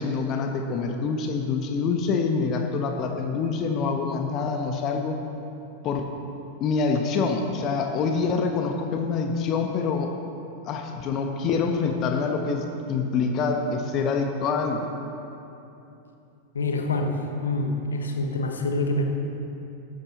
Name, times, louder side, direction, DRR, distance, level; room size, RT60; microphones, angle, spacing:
voice 1, 0.0-5.2 5.8-6.1 6.6-10.1 10.6-14.9, left 4 dB, 35° left, 4 dB, 0.9 m, -26 dB
voice 2, 16.5-19.0, left 2 dB, 70° left, 3 dB, 1.1 m, -26 dB
13.0 x 12.5 x 3.0 m, 2.8 s
figure-of-eight pair, 90°, 0 cm